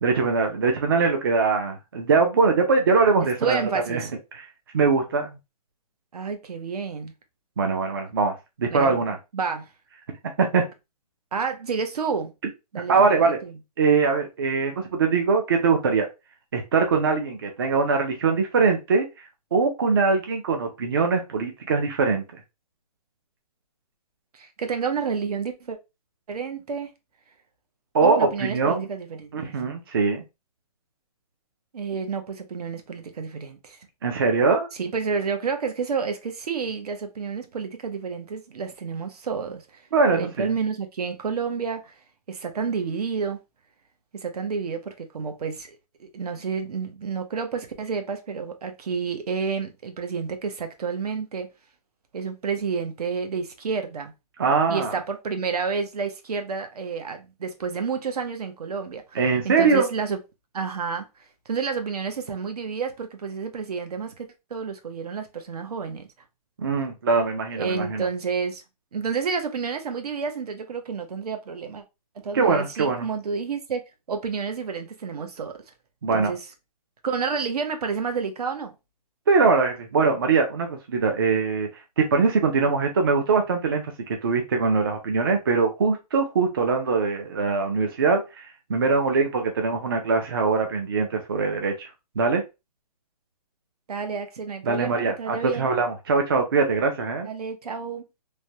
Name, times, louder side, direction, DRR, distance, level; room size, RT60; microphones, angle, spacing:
voice 1, 0.0-3.6 3.9-4.0 4.3-4.4 4.7-5.3 7.6-9.2 10.4-10.7 12.9-13.4 13.8-16.1 16.5-19.0 19.5-22.4 27.9-28.9 29.3-30.2 34.0-34.7 39.9-40.5 54.4-55.0 59.1-59.9 66.6-68.1 72.3-73.1 76.0-76.3 79.3-81.7 82.0-83.9 84.2-88.4 88.7-91.9 92.2-92.4 94.6-97.3, right 4 dB, 35° right, 0.4 m, -22 dB
voice 2, 3.4-4.1 6.1-7.1 8.7-9.0 9.3-9.7 11.3-12.3 12.7-13.5 24.3-25.8 26.3-26.9 28.0-29.5 31.7-33.8 34.8-39.8 40.1-41.9 42.3-43.4 44.2-51.5 52.1-54.1 54.7-59.2 59.4-60.2 60.5-61.1 61.5-66.1 67.6-68.6 68.9-71.8 72.2-73.8 74.1-75.6 76.1-76.5 77.0-78.7 93.9-95.7 97.2-98.0, right 5 dB, 75° right, 0.7 m, -30 dB
3.2 x 2.1 x 2.7 m
hypercardioid pair, 170°, 20 cm